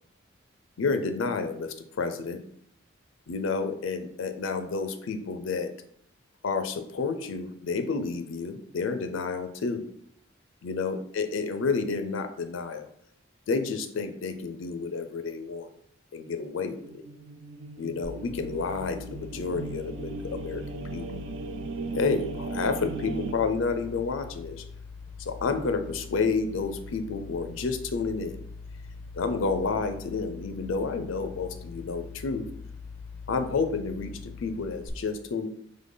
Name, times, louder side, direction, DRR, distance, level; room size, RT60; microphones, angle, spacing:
voice 1, 0.8-2.4 3.3-5.7 6.4-9.8 10.6-12.9 13.5-15.7 16.1-16.9 17.8-21.0 21.9-24.6 25.2-28.4 29.1-32.5 33.3-35.5, left 4 dB, 80° left, 8 dB, 0.4 m, -30 dB
sound 1, 16.6-23.3, right 4 dB, 60° right, 0.3 m, -37 dB
sound 2, 18.0-34.9, left 4 dB, 10° left, 0.5 m, -43 dB
3.8 x 3.3 x 3.7 m, 0.66 s
head